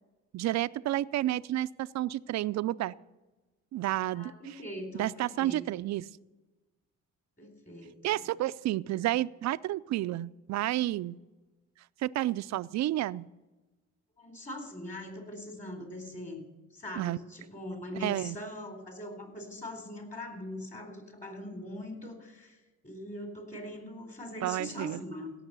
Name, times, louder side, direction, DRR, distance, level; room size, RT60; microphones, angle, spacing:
voice 1, 0.3-2.9 3.7-4.3 4.9-6.1 8.0-11.2 12.0-13.3 17.0-17.2 18.0-18.4 24.4-25.0, right 14 dB, 65° right, 17 dB, 0.5 m, -30 dB
voice 2, 4.1-5.6 7.4-8.2 14.2-16.4 16.7-25.3, left 1 dB, 25° left, 4 dB, 3.9 m, -42 dB
17.0 x 6.5 x 6.8 m, 1.1 s
cardioid pair, 90°, 30 cm